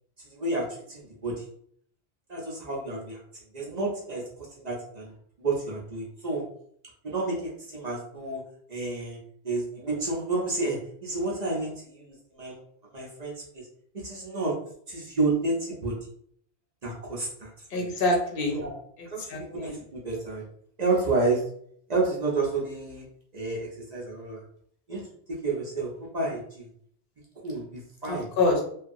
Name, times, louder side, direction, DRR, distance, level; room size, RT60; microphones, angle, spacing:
voice 1, 0.3-1.4 2.3-3.2 3.5-5.1 5.4-6.4 7.0-8.4 8.7-9.2 9.4-12.6 12.9-13.7 13.9-14.6 14.9-15.9 16.8-17.9 18.5-18.7 19.1-20.4 20.8-21.4 21.9-23.0 23.3-24.4 24.9-25.0 25.3-26.7 27.4-28.3, right 3 dB, 45° right, -3 dB, 0.7 m, -30 dB
voice 2, 17.7-18.6 19.3-19.7 28.1-28.6, left 2 dB, 60° left, 1 dB, 0.8 m, -26 dB
2.8 x 2.3 x 2.5 m, 0.63 s
omnidirectional pair, 1.1 m